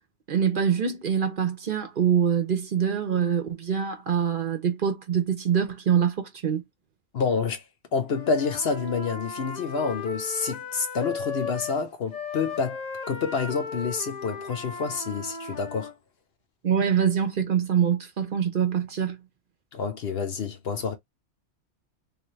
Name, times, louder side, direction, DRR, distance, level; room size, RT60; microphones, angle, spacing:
voice 1, 0.3-6.6 16.6-19.2, right 8 dB, 55° right, 0.8 m, -24 dB
voice 2, 7.1-7.6 7.9-12.8 13.1-15.9 19.7-21.0, left 5 dB, 60° left, 1.0 m, -28 dB
Wind instrument woodwind instrument, 8.1-11.8 12.1-15.9, left 5 dB, 45° left, 0.8 m, -36 dB
3.3 x 2.6 x 3.0 m
omnidirectional pair, 1.2 m